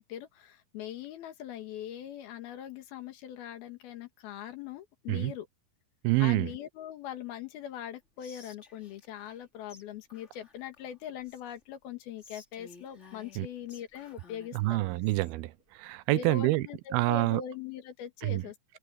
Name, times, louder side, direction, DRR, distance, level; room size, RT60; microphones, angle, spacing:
voice 1, 0.0-5.5 6.2-14.8 16.1-18.6, left 10 dB, 75° left, 3.5 m, -41 dB
voice 2, 6.0-6.5 13.4-13.5 14.5-16.6 16.9-17.4 18.2-18.4, right 19 dB, 90° right, 2.6 m, -27 dB
Whispering, 8.2-9.4 9.7-9.8 10.1-11.6 12.2-15.3, left 4 dB, 20° left, 2.2 m, -55 dB
omnidirectional pair, 4.4 m